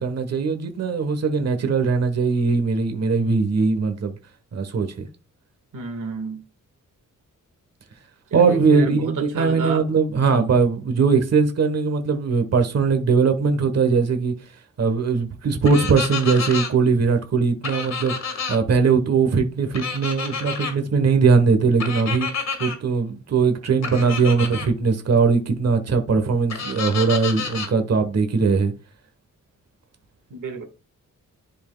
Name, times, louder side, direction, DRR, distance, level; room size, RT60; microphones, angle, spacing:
voice 1, 0.0-4.1 4.5-5.1 8.3-14.3 14.8-28.7, right 5 dB, 55° right, 1.2 m, -20 dB
voice 2, 5.7-6.4 8.3-9.8 10.3-10.5 24.0-24.3 30.3-30.6, right 3 dB, 75° right, 1.7 m, -31 dB
sound 1, 15.6-16.7 17.6-18.6 19.7-20.7 21.8-22.8 23.8-24.7 26.5-27.7, left 5 dB, 55° left, 1.9 m, -29 dB
10.5 x 4.5 x 2.3 m
wide cardioid pair, 155°, 32 cm